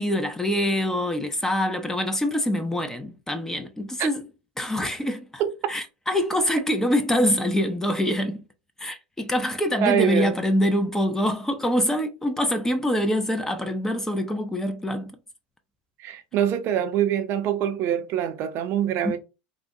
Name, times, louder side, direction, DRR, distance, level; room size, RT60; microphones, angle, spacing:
voice 1, 0.0-4.2 4.6-5.3 5.7-8.4 8.8-15.2, equal, 10° left, 0.5 m, -25 dB
voice 2, 9.8-10.4 16.0-19.2, right 9 dB, 45° right, 0.5 m, -24 dB
3.5 x 2.1 x 2.6 m
hypercardioid pair, 105°, 5 cm